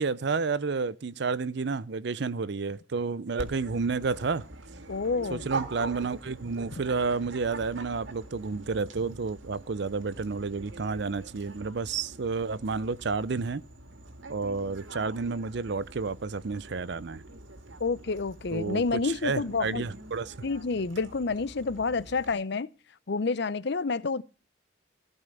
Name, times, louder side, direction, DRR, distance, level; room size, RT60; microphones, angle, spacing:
voice 1, 0.0-4.4 5.3-13.6 14.3-17.2 18.5-20.3, right 4 dB, 60° right, 0.5 m, -30 dB
Dog, 3.4-22.3, right 3 dB, 75° right, 1.9 m, -44 dB
voice 2, 4.9-5.5 17.8-19.8 20.4-22.7 23.1-24.2, left 4 dB, 60° left, 0.6 m, -29 dB
15.5 x 5.5 x 7.9 m
head